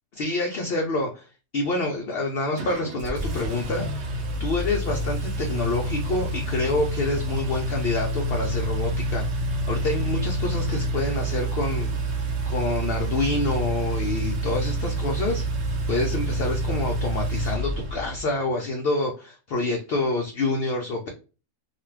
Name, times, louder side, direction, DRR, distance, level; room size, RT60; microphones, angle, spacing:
voice 1, 0.2-1.3 1.5-4.1 4.4-12.2 12.5-15.4 15.9-21.1, left 2 dB, 65° left, 2 dB, 0.6 m, -27 dB
Engine, 2.6-18.3, right 1 dB, 60° right, 0.8 m, -28 dB
2.4 x 2.3 x 3.1 m, 0.33 s
omnidirectional pair, 1.5 m